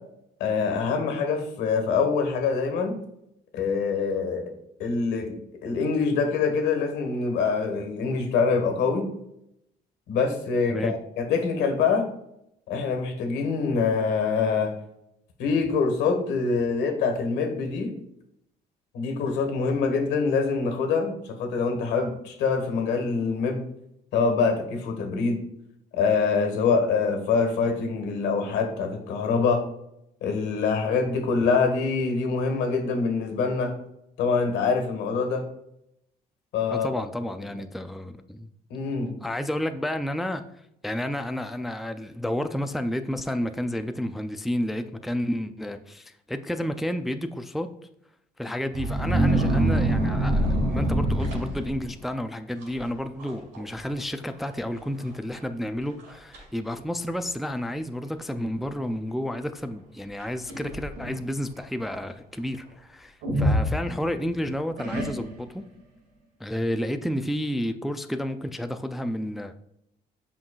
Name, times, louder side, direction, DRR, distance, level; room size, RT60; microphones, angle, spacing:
voice 1, 0.4-3.0 3.5-4.5 4.8-5.4 5.6-9.1 10.1-12.1 12.7-14.7 15.4-17.9 18.9-23.6 24.1-25.4 25.9-29.6 30.2-33.7 34.2-35.4 36.5-36.9 38.7-39.1, left 5 dB, 85° left, 5 dB, 1.5 m, -25 dB
voice 2, 36.7-38.5 39.2-40.4 40.8-47.7 48.4-65.6 66.4-69.5, equal, ahead, 8 dB, 0.3 m, -31 dB
sound 1, 48.7-52.0 52.6-52.9 53.2-53.6 53.9-54.0 54.8-54.9 55.4-55.5 56.0-56.4 57.2-57.3 60.2-61.2 63.2-64.3 64.8-65.5, right 1 dB, 85° right, 2.3 m, -25 dB
7.5 x 5.6 x 2.3 m, 0.78 s
cardioid pair, 110°, 17 cm